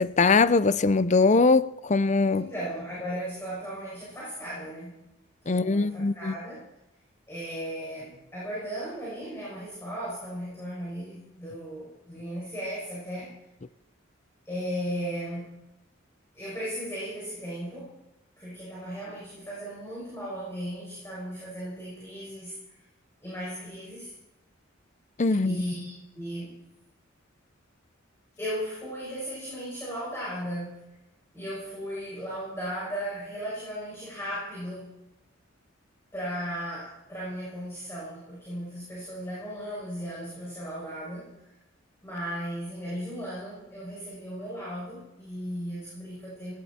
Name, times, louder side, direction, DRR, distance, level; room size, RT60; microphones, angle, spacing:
voice 1, 0.0-2.5 5.5-6.3 25.2-25.6, left 3 dB, 35° left, 0.6 m, -22 dB
voice 2, 2.3-5.0 5.4-6.6 7.3-13.3 14.4-15.6 16.3-17.9 18.4-22.6 23.2-24.1 25.4-26.6 28.4-30.8 31.3-34.9 36.1-41.3 42.0-46.5, equal, 15° left, 6.5 m, -36 dB
19.5 x 16.0 x 4.4 m
head